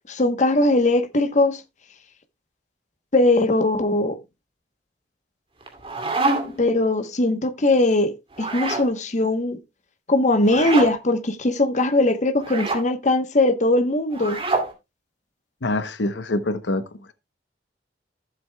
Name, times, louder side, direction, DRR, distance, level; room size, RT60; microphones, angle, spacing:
voice 1, 0.1-1.6 3.1-4.2 6.6-9.6 10.1-14.4, left 2 dB, 40° left, 1.0 m, -20 dB
sound 1, 5.6-6.7 8.3-8.9 10.4-10.9 12.4-12.8 14.1-14.7, right 3 dB, 30° right, 2.4 m, -26 dB
voice 2, 15.6-17.1, left 2 dB, 80° left, 0.8 m, -26 dB
14.5 x 7.7 x 2.2 m
head